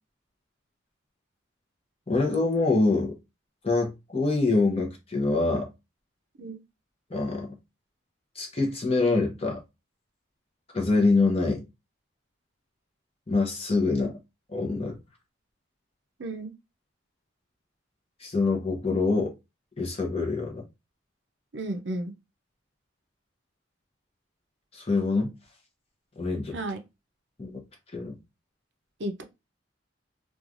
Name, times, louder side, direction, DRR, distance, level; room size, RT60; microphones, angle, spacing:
voice 1, 2.1-3.1 3.6-5.7 7.1-7.6 8.4-9.6 10.7-11.7 13.3-14.2 14.5-15.0 18.2-19.3 19.8-20.6 24.7-25.3 26.2-26.6 27.4-27.6 27.9-28.2, left 3 dB, 30° left, 0.7 m, -25 dB
voice 2, 16.2-16.5 21.5-22.1 26.5-26.8 29.0-29.2, right 1 dB, 65° right, 0.5 m, -33 dB
3.1 x 2.3 x 2.5 m
head